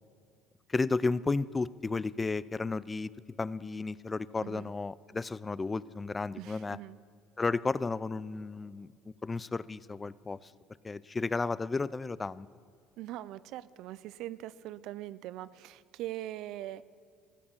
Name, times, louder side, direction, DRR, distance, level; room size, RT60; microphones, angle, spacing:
voice 1, 0.7-3.1 3.4-6.8 7.4-8.9 9.2-10.5 10.8-12.5, left 3 dB, 25° left, 19 dB, 0.4 m, -33 dB
voice 2, 4.4-4.7 6.4-7.0 13.0-16.8, right 14 dB, 65° right, 17 dB, 0.4 m, -41 dB
14.5 x 8.6 x 7.2 m, 2.2 s
hypercardioid pair, 75°, 0 cm